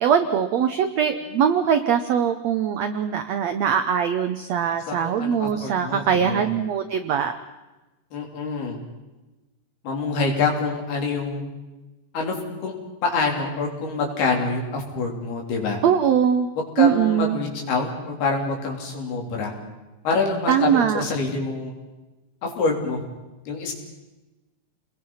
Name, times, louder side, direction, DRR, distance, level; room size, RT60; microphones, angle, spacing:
voice 1, 0.0-7.3 15.8-16.5 16.8-17.4 20.5-21.0, right 8 dB, 85° right, 8 dB, 1.5 m, -21 dB
voice 2, 4.9-6.5 8.1-8.8 9.8-11.4 12.1-12.4 12.6-12.7 13.0-15.8 16.8-19.5 20.1-21.7 22.4-23.0 23.5-23.7, left 3 dB, 90° left, 1 dB, 5.6 m, -26 dB
29.5 x 21.0 x 5.7 m, 1.1 s
omnidirectional pair, 4.4 m